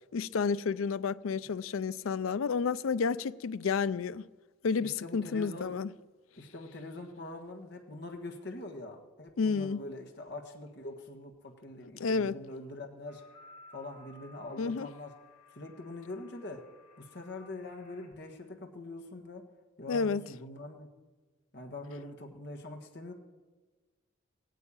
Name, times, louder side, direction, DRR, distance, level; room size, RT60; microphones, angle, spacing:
voice 1, 0.1-4.3 4.6-5.9 9.4-9.8 12.0-12.4 14.6-14.9 19.9-20.3, left 5 dB, 90° left, 0.5 m, -30 dB
voice 2, 4.8-5.8 6.4-13.2 13.7-15.1 15.5-16.7 17.0-19.4 19.8-20.9 21.5-23.1, left 2 dB, 55° left, 1.6 m, -43 dB
sound 1, 13.1-18.1, left 2 dB, 40° left, 4.0 m, -57 dB
16.5 x 9.2 x 8.9 m
head